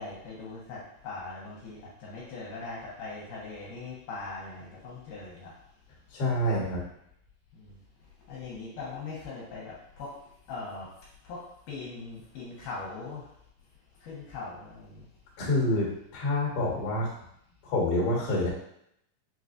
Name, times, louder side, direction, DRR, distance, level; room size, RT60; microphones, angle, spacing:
voice 1, 0.0-5.5 7.5-7.8 8.3-10.2 10.5-10.9 11.2-13.3 14.0-15.1, left 3 dB, 75° left, -6 dB, 2.2 m, -40 dB
voice 2, 6.1-6.8 15.4-17.1 17.6-18.5, left 1 dB, 55° left, -5 dB, 1.6 m, -27 dB
5.9 x 2.3 x 2.5 m, 0.74 s
omnidirectional pair, 4.0 m